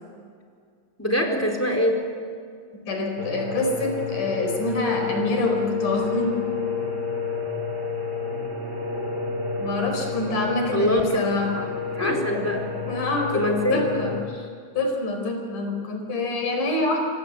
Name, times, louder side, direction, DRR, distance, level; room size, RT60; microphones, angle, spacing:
voice 1, 1.0-2.0 10.7-11.2 11.9-12.6 13.3-13.8, equal, 5° left, 3 dB, 4.0 m, -23 dB
voice 2, 2.7-6.3 9.6-11.7 12.0-12.2 12.9-13.4 13.7-14.5 14.7-17.0, left 2 dB, 75° left, 3 dB, 6.3 m, -26 dB
sound 1, 3.2-14.2, left 5 dB, 30° right, 3.6 m, -30 dB
27.0 x 25.5 x 8.5 m, 2.2 s
omnidirectional pair, 3.7 m